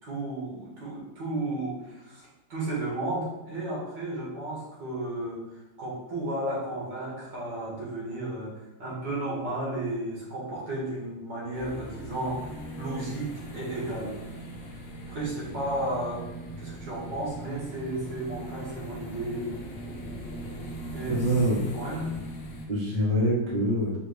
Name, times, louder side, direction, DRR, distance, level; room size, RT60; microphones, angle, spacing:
voice 1, 0.0-14.2 15.1-16.3 16.6-19.5 20.9-21.2 21.7-22.2, right 1 dB, 75° right, -6 dB, 2.4 m, -33 dB
sound 1, 11.5-22.7, right 1 dB, 55° left, 0.8 m, -40 dB
voice 2, 21.1-21.7 22.0-22.1 22.7-23.9, equal, 35° right, -5 dB, 1.0 m, -25 dB
4.8 x 3.1 x 3.4 m, 0.96 s
omnidirectional pair, 1.9 m